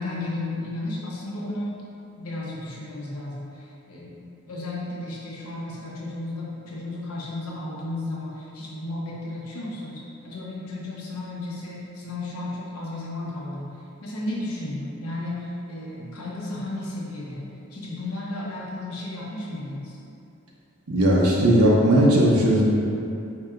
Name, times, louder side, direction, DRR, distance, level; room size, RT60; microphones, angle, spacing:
voice 1, 0.0-1.7 2.2-13.7 14.0-20.0, left 2 dB, 85° left, -5 dB, 0.9 m, -33 dB
voice 2, 20.9-22.6, right 1 dB, 85° right, -5 dB, 0.8 m, -17 dB
4.7 x 4.3 x 2.5 m, 2.7 s
head